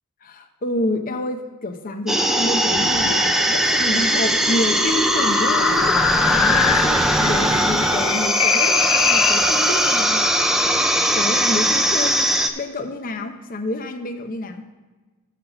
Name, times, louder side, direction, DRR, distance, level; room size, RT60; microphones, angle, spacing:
voice 1, 0.2-10.7 11.1-14.6, left 1 dB, 40° left, 6 dB, 0.7 m, -28 dB
sound 1, 2.1-12.5, right 1 dB, ahead, 0.5 m, -19 dB
sound 2, 2.6-10.0, left 11 dB, 85° left, 0.3 m, -25 dB
8.3 x 5.9 x 6.8 m, 1.3 s
head